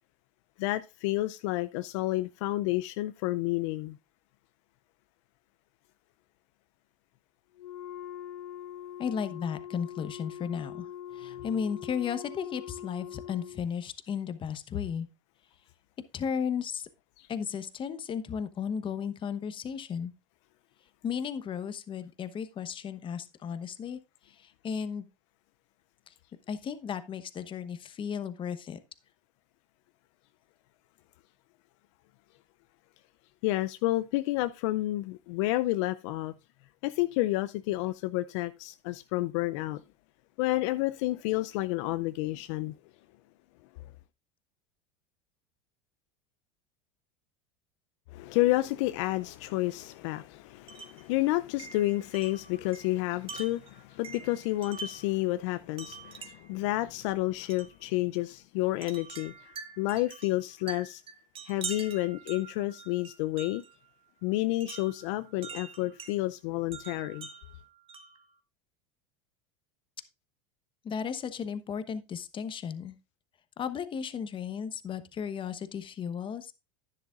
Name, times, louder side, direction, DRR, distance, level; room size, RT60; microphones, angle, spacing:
voice 1, 0.6-4.0 17.2-17.3 33.4-36.3 36.8-39.8 40.4-42.7 48.1-61.0 61.4-63.6 64.2-67.3, left 18 dB, 65° left, 0.5 m, -30 dB
Wind instrument woodwind instrument, 7.6-13.7, left 10 dB, 85° left, 3.1 m, -43 dB
voice 2, 9.0-10.9 11.1-15.1 16.1-16.9 17.3-20.1 21.0-24.0 24.3-25.1 26.5-28.8 70.8-73.0 73.6-76.5, left 7 dB, 30° left, 1.0 m, -34 dB
Wind chime, 50.7-51.1 51.6-55.2 55.8-56.6 57.5-57.8 58.8-63.7 64.6-66.2 66.7-68.2, right 5 dB, 35° right, 1.5 m, -44 dB
10.5 x 10.0 x 2.5 m
hypercardioid pair, 100°, 16 cm